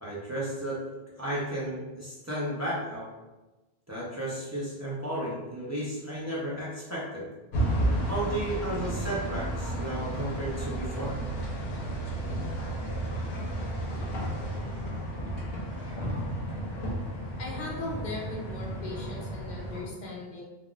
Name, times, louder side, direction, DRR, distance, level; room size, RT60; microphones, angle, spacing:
voice 1, 0.0-0.8 1.2-3.1 3.9-7.3 8.0-11.2, right 1 dB, 20° right, -7 dB, 0.5 m, -33 dB
sound 1, 7.5-19.8, right 1 dB, 70° left, 1.0 m, -32 dB
voice 2, 17.4-20.4, left 2 dB, 50° left, -2 dB, 0.7 m, -38 dB
3.5 x 2.3 x 2.3 m, 1.1 s
omnidirectional pair, 1.1 m